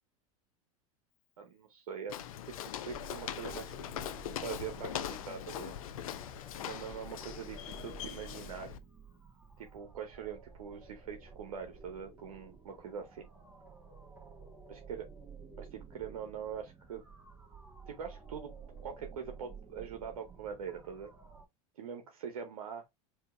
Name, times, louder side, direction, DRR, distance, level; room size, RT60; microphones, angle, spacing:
voice 1, 1.4-2.5 2.8-3.7 4.4-5.7 6.7-8.7 9.6-13.3 14.7-15.0 15.6-17.0 17.9-21.1 21.8-22.9, right 7 dB, 85° right, 0.9 m, -43 dB
Walk footsteps, 2.1-8.8, left 11 dB, 80° left, 0.6 m, -41 dB
sound 1, 2.9-21.4, right 5 dB, 10° right, 1.7 m, -52 dB
4.5 x 2.9 x 3.0 m
hypercardioid pair, 95°, 18 cm